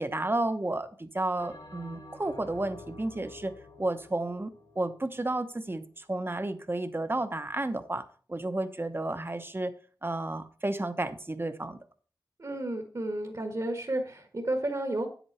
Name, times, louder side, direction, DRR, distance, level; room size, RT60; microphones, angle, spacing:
voice 1, 0.0-3.5 3.8-9.7 10.0-11.8, right 2 dB, 30° right, 10 dB, 0.9 m, -32 dB
Bell, 1.4-6.0, left 2 dB, 80° left, 4.1 m, -50 dB
voice 2, 12.4-15.1, right 1 dB, 50° right, 3 dB, 1.6 m, -32 dB
9.8 x 8.1 x 4.3 m, 0.41 s
wide cardioid pair, 75°, 8 cm